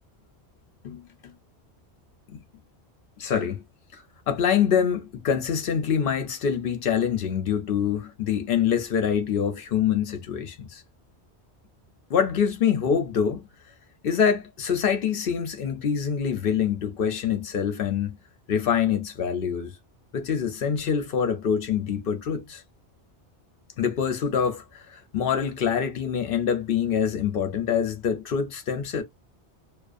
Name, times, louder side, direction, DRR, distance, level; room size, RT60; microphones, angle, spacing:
voice 1, 0.8-1.3 2.3-2.4 3.2-3.6 3.9-10.8 12.1-13.5 14.0-18.2 18.5-19.8 20.1-22.6 23.8-29.0, left 7 dB, 65° left, 0.7 m, -25 dB
2.4 x 2.3 x 2.4 m
omnidirectional pair, 1.1 m